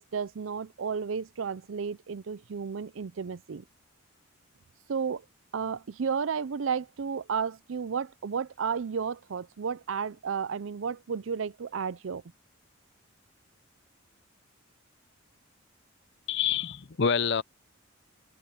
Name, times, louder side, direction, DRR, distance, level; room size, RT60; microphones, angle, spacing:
voice 1, 0.0-3.6 4.9-5.2 5.5-12.2, right 6 dB, 80° right, 0.5 m, -32 dB
voice 2, 16.3-17.4, left 7 dB, 60° left, 0.6 m, -27 dB
head